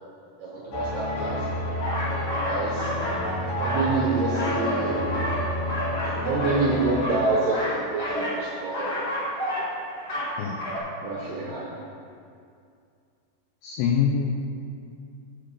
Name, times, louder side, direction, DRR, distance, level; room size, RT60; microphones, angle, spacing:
voice 1, 0.4-1.5 2.4-2.9 3.6-5.2 6.0-9.0 11.0-11.8, right 3 dB, 80° right, -5 dB, 2.0 m, -27 dB
sound 1, 0.7-7.0, left 1 dB, 65° left, 1.9 m, -30 dB
sound 2, 1.8-3.2 3.5-4.9 5.1-6.6 6.9-8.4 8.7-9.7 10.0-10.3 10.6-10.8, equal, 50° left, 1.2 m, -30 dB
voice 2, 13.6-14.3, left 7 dB, 90° left, 1 dB, 2.1 m, -24 dB
6.5 x 5.8 x 6.7 m, 2.4 s
omnidirectional pair, 5.1 m